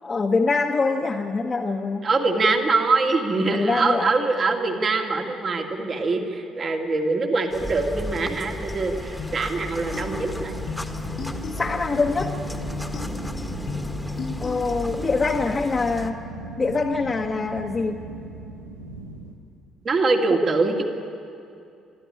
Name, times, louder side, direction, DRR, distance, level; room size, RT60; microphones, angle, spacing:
voice 1, 0.0-2.1 3.5-4.1 11.6-12.4 14.4-16.2 16.6-18.0, left 3 dB, 30° left, 0 dB, 1.4 m, -24 dB
voice 2, 2.0-10.6 19.8-20.9, right 3 dB, 40° right, 2 dB, 2.5 m, -23 dB
sound 1, 7.5-16.1, left 1 dB, 5° left, 1.7 m, -34 dB
sound 2, 9.2-15.2, left 5 dB, 45° left, 1.2 m, -36 dB
sound 3, 9.7-19.3, right 2 dB, 85° right, 1.3 m, -39 dB
25.5 x 13.0 x 9.9 m, 2.5 s
figure-of-eight pair, 45°, 0 cm